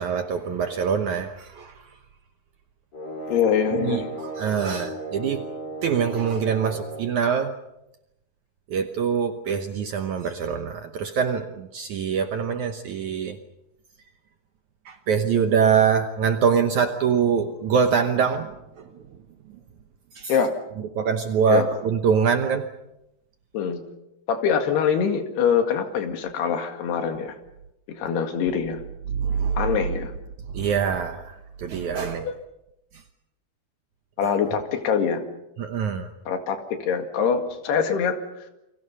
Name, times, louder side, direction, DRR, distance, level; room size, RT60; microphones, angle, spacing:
voice 1, 0.0-1.7 3.7-5.4 5.8-7.6 8.7-13.4 14.9-18.5 18.8-18.9 20.1-20.3 21.0-22.7 29.1-29.8 30.5-32.3 35.6-36.1, right 7 dB, 65° right, 6 dB, 2.0 m, -24 dB
sound 1, 2.9-7.2, right 2 dB, 30° left, 3.5 m, -35 dB
voice 2, 3.3-4.1 20.3-20.5 21.5-21.7 23.5-23.8 24.3-27.4 27.9-28.8 29.6-30.1 32.2-32.3 34.2-35.2 36.3-38.4, left 7 dB, 80° left, 6 dB, 4.1 m, -24 dB
29.5 x 24.5 x 5.6 m, 0.89 s
omnidirectional pair, 4.7 m